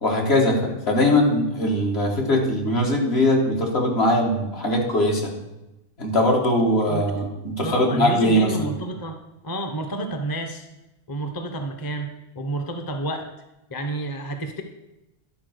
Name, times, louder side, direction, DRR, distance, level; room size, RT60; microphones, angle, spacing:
voice 1, 0.0-5.4 6.0-8.7, left 1 dB, 60° left, 0 dB, 1.9 m, -21 dB
voice 2, 7.6-9.2 9.4-10.7 11.1-12.1 12.4-13.3 13.7-14.6, right 1 dB, 20° left, 5 dB, 0.7 m, -30 dB
11.0 x 4.3 x 6.4 m, 0.96 s
omnidirectional pair, 1.2 m